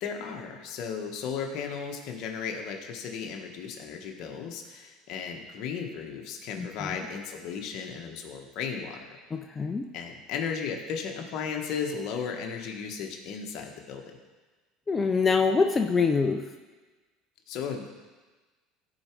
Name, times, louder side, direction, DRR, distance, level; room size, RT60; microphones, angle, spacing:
voice 1, 0.0-9.2 9.9-14.2 17.5-17.9, left 6 dB, 60° left, 2 dB, 1.4 m, -35 dB
voice 2, 6.6-6.9 9.3-9.9 14.9-16.5, left 4 dB, 20° left, 5 dB, 0.5 m, -25 dB
14.5 x 5.0 x 4.7 m, 1.3 s
supercardioid pair, 110°, 0 cm